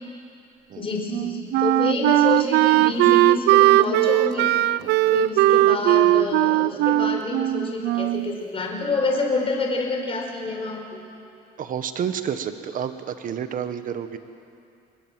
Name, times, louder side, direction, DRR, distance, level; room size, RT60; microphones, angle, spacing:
voice 1, 0.8-4.5 5.1-11.0, left 3 dB, 35° left, 1 dB, 5.3 m, -27 dB
Wind instrument woodwind instrument, 1.1-8.4, right 16 dB, 80° right, 0.5 m, -19 dB
voice 2, 4.8-5.2 11.6-14.2, right 8 dB, 55° right, 9 dB, 1.5 m, -30 dB
25.5 x 22.5 x 7.8 m, 2.6 s
cardioid pair, 110°, 17 cm